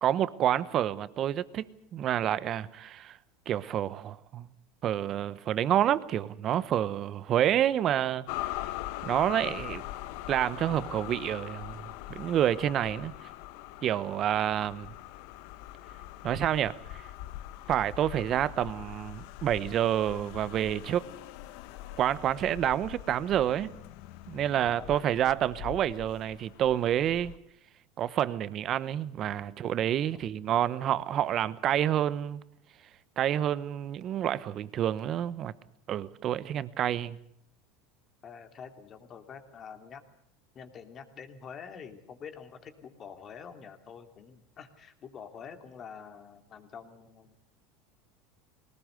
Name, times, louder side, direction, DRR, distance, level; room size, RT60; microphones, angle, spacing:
voice 1, 0.0-1.7 1.9-3.2 3.5-4.5 4.8-8.5 9.0-9.8 10.3-11.8 12.1-13.1 13.8-14.9 16.2-17.0 17.7-21.1 22.0-23.7 24.3-27.3 28.0-32.4 33.2-35.5 35.9-37.2, right 11 dB, 45° right, 1.0 m, -28 dB
sound 1, 8.3-27.4, left 15 dB, 70° left, 1.1 m, -42 dB
voice 2, 24.5-25.2 30.1-30.2 38.2-40.0 40.5-47.4, left 7 dB, 35° left, 3.0 m, -47 dB
21.0 x 19.0 x 8.2 m
supercardioid pair, 110°, 0 cm